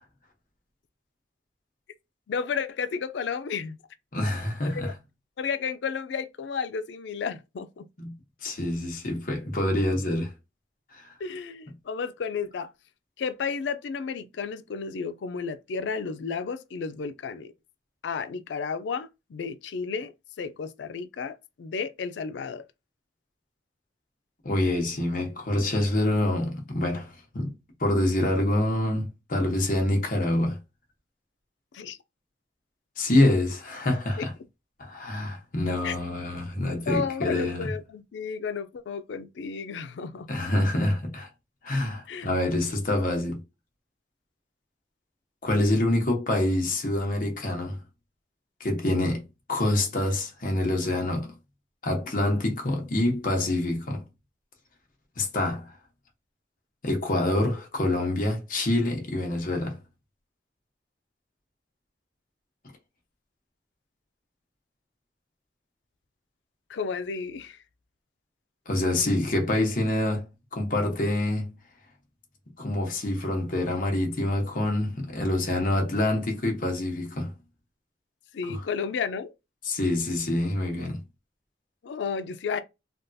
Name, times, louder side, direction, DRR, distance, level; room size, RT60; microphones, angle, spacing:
voice 1, 2.3-3.8 4.6-4.9 5.4-7.8 11.2-12.7 13.2-17.5 18.0-20.1 20.4-22.6 31.7-32.0 34.2-34.3 35.8-35.9 36.9-40.3 42.1-42.3 66.7-67.6 78.3-79.3 81.8-82.6, left 5 dB, 90° left, 0.4 m, -32 dB
voice 2, 4.1-4.9 8.0-8.1 8.4-10.3 10.9-11.1 24.4-27.5 27.8-30.6 33.0-34.3 34.8-37.7 40.3-41.3 41.6-43.4 45.4-47.8 48.6-49.2 49.5-51.3 51.8-54.0 55.2-55.7 56.8-59.8 68.7-71.5 72.6-77.3 78.4-78.6 79.6-81.0, left 1 dB, 50° left, 0.9 m, -26 dB
3.5 x 2.3 x 2.6 m
head